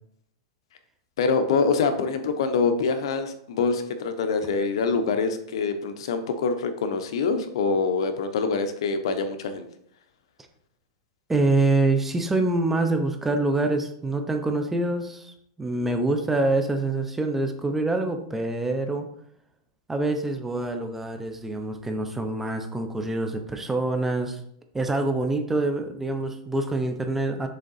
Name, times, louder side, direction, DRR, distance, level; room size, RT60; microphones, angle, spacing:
voice 1, 1.2-9.7, left 4 dB, 70° left, 9 dB, 0.8 m, -25 dB
voice 2, 11.3-19.1 19.9-24.4 24.7-27.5, right 2 dB, 10° right, 6 dB, 0.6 m, -25 dB
6.6 x 3.7 x 4.1 m, 0.69 s
supercardioid pair, 150°, 3 cm